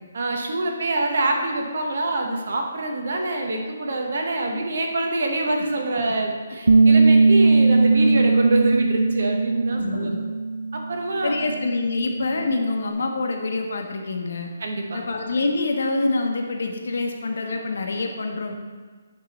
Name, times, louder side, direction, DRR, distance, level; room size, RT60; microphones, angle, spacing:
voice 1, 0.1-10.2 10.7-11.3 14.6-15.0, right 2 dB, 60° right, 2 dB, 1.1 m, -25 dB
Bass guitar, 6.7-11.0 11.3-12.9, right 3 dB, 90° right, 0.3 m, -19 dB
voice 2, 7.7-8.2 9.7-10.2 11.2-14.5 14.9-18.5, left 3 dB, 65° left, 3 dB, 1.0 m, -26 dB
9.5 x 3.6 x 4.2 m, 1.5 s
hypercardioid pair, 170°, 0 cm